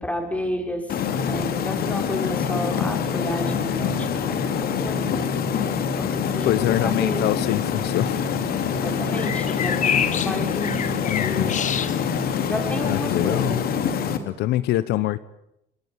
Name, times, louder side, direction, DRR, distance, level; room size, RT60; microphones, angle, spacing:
voice 1, 0.0-5.3 5.9-7.3 8.7-11.7 12.5-14.1, equal, 10° left, 4 dB, 6.1 m, -32 dB
sound 1, 0.9-14.2, left 7 dB, 65° left, 2.8 m, -25 dB
voice 2, 6.4-8.2 8.6-8.8 11.0-11.6 12.8-13.6 14.3-15.2, left 15 dB, 80° left, 16 dB, 1.0 m, -24 dB
sound 2, 7.0-13.1, left 8 dB, 45° left, 1.6 m, -30 dB
26.0 x 21.5 x 9.1 m, 0.80 s
cardioid pair, 110°, 17 cm